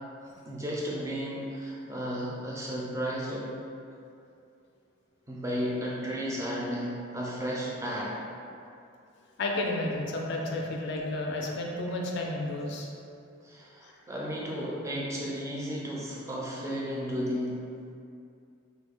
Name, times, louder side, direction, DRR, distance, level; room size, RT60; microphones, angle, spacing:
voice 1, 0.5-3.6 5.3-8.1 13.4-17.6, equal, 15° right, -5 dB, 0.4 m, -33 dB
voice 2, 9.4-12.9, left 2 dB, 55° left, -1 dB, 0.4 m, -31 dB
3.1 x 2.0 x 3.4 m, 2.5 s
head